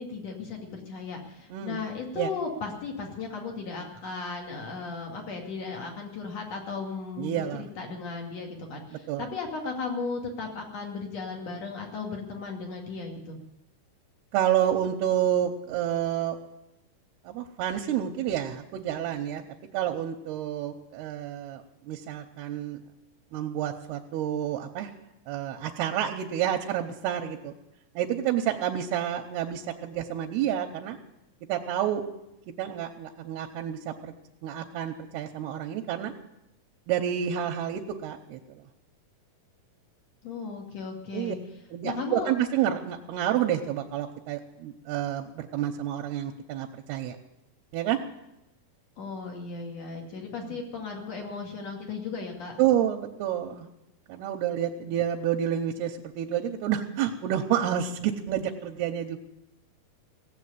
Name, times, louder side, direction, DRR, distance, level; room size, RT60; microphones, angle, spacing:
voice 1, 0.0-13.4 40.2-41.4 41.8-42.3 49.0-52.5 54.8-55.0, left 4 dB, 45° left, 2 dB, 3.2 m, -36 dB
voice 2, 1.5-1.8 2.1-2.3 7.2-7.6 8.9-9.3 14.3-16.4 17.2-19.4 19.7-22.8 23.3-24.9 25.3-27.5 28.0-31.0 31.5-32.0 32.6-34.1 34.4-36.1 36.9-38.4 41.1-41.4 41.7-47.2 47.7-48.0 50.4-50.6 52.6-53.7 54.1-59.2, right 10 dB, 85° right, 2 dB, 2.9 m, -29 dB
17.0 x 8.1 x 9.6 m, 0.89 s
omnidirectional pair, 4.6 m